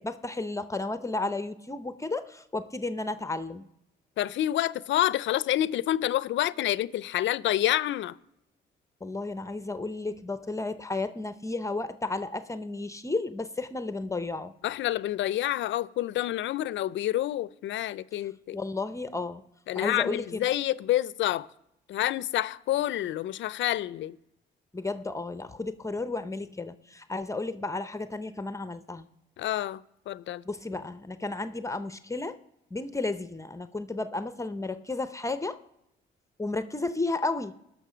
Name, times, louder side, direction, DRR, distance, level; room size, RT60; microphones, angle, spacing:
voice 1, 0.0-3.7 9.0-14.5 18.5-19.4 19.7-20.4 24.7-29.1 30.5-32.4 32.7-35.6 36.4-37.5, left 3 dB, 15° left, 0.6 m, -33 dB
voice 2, 4.2-8.2 14.6-18.6 19.7-21.5 21.9-24.2 29.4-30.4, left 13 dB, 70° left, 0.5 m, -28 dB
19.0 x 6.4 x 5.0 m
cardioid pair, 90°, 20 cm